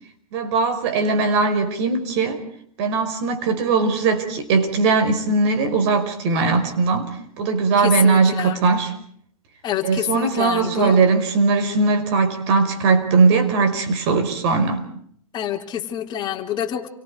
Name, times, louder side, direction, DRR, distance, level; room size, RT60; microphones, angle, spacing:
voice 1, 0.3-2.4 2.8-8.9 9.8-14.8, right 4 dB, 50° right, 4.9 m, -19 dB
voice 2, 7.8-8.6 9.6-11.0 15.3-16.9, left 10 dB, 25° left, 3.6 m, -27 dB
29.0 x 24.5 x 4.8 m
hypercardioid pair, 130°, 18 cm